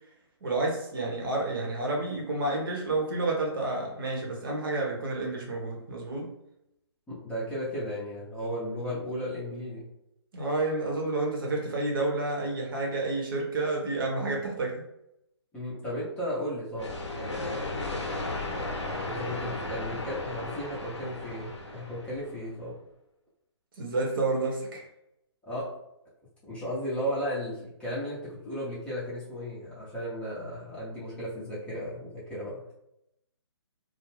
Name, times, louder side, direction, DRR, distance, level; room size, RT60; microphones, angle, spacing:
voice 1, 0.4-6.3 10.3-14.8 23.8-24.8, right 2 dB, 50° right, 0 dB, 0.8 m, -30 dB
voice 2, 7.1-9.9 15.5-17.7 19.0-22.7 25.5-25.7 26.4-32.6, equal, 5° left, -9 dB, 0.6 m, -35 dB
sound 1, 16.7-22.5, left 2 dB, 80° left, 0.7 m, -35 dB
2.4 x 2.0 x 3.2 m, 0.82 s
figure-of-eight pair, 145°, 15 cm